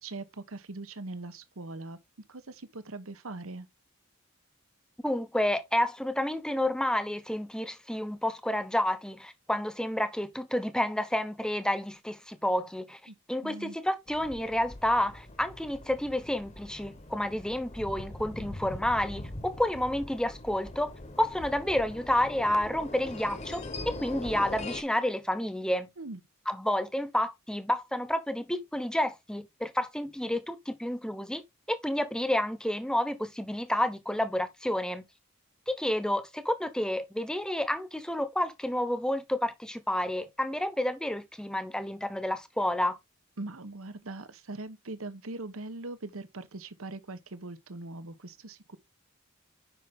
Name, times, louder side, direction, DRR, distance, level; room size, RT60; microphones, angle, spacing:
voice 1, 0.0-2.0 2.3-3.7 13.1-13.2 13.4-13.8 26.0-26.2 43.4-48.8, right 2 dB, 85° right, 1.1 m, -41 dB
voice 2, 5.0-13.0 13.3-20.9 21.2-23.6 24.0-25.9 26.5-31.4 31.7-35.0 35.7-43.0, left 1 dB, 5° left, 0.9 m, -30 dB
sound 1, 14.1-24.8, left 2 dB, 30° left, 1.0 m, -42 dB
8.3 x 5.6 x 3.7 m
head